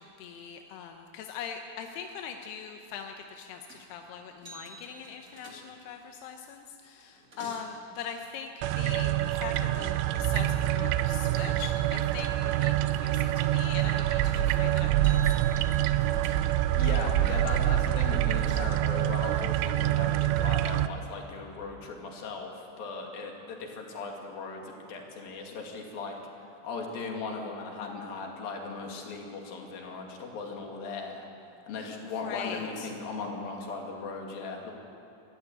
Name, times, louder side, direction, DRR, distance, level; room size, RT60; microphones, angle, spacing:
voice 1, 0.0-15.6 31.8-32.9, left 7 dB, 75° left, 4 dB, 2.5 m, -41 dB
sound 1, 3.7-4.0 4.4-6.0 6.8-7.7 14.3-14.6 14.9-16.8 18.1-18.8, right 1 dB, 25° right, 2.1 m, -50 dB
sound 2, 8.6-20.9, right 13 dB, 85° right, 3.0 m, -26 dB
voice 2, 16.8-26.2 26.6-31.3 31.7-34.7, left 4 dB, 55° left, 1 dB, 3.7 m, -38 dB
24.0 x 14.0 x 8.9 m, 2.8 s
omnidirectional pair, 5.7 m